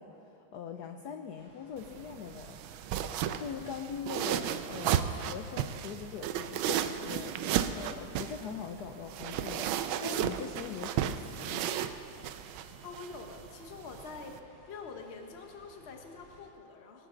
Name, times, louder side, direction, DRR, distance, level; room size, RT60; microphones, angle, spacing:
voice 1, 0.0-3.0 3.4-11.7, left 7 dB, 70° left, 5 dB, 0.9 m, -42 dB
sound 1, 1.4-16.5, equal, 50° right, 4.8 m, -60 dB
sound 2, 1.8-14.4, right 10 dB, 75° right, 1.3 m, -34 dB
voice 2, 12.8-14.4 14.7-17.1, left 4 dB, 40° left, 3 dB, 1.1 m, -46 dB
20.0 x 12.5 x 3.8 m, 2.6 s
omnidirectional pair, 2.4 m